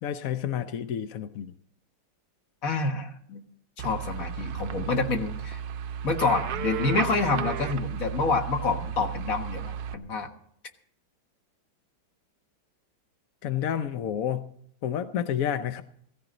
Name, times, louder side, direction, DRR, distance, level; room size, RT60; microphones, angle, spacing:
voice 1, 0.0-1.5 13.4-14.4 14.8-15.8, left 9 dB, 65° left, 0.9 m, -29 dB
voice 2, 2.6-3.4 3.8-5.6 6.0-10.3, left 3 dB, 45° left, 1.9 m, -27 dB
sound 1, 3.8-9.9, right 8 dB, 65° right, 1.1 m, -34 dB
17.0 x 14.5 x 3.9 m
omnidirectional pair, 2.1 m